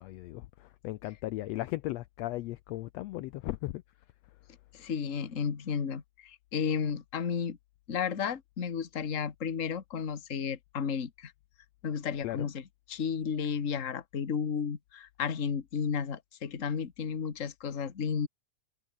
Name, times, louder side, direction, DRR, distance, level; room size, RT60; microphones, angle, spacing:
voice 1, 0.0-3.8 12.2-12.5, left 17 dB, 85° left, 1.5 m, -37 dB
voice 2, 4.7-7.6 7.9-11.3 11.8-12.6 12.9-18.3, left 6 dB, 35° left, 1.4 m, -33 dB
omnidirectional pair, 3.7 m